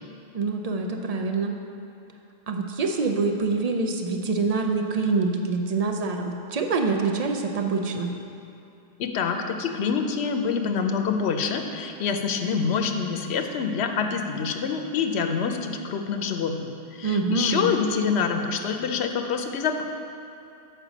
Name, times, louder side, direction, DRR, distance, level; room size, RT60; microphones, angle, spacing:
voice 1, 0.3-1.6 2.5-8.1 17.0-17.7, right 4 dB, 50° right, 4 dB, 0.5 m, -25 dB
voice 2, 9.0-19.8, left 6 dB, 85° left, 5 dB, 0.9 m, -26 dB
7.4 x 5.1 x 5.0 m, 2.7 s
omnidirectional pair, 1.0 m